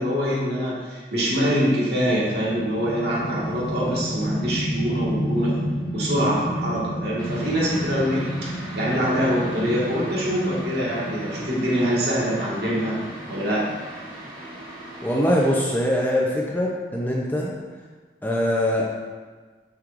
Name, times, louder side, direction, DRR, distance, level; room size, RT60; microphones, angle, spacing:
voice 1, 0.0-5.6 5.9-13.0 13.3-13.9, equal, 70° right, -6 dB, 1.8 m, -24 dB
sound 1, 2.1-14.3, equal, 70° left, 1.4 m, -32 dB
sound 2, 7.2-15.6, right 1 dB, 30° right, 1.8 m, -39 dB
voice 2, 15.0-17.5 18.2-18.9, equal, 10° left, -3 dB, 0.6 m, -22 dB
6.3 x 6.0 x 2.6 m, 1.4 s
head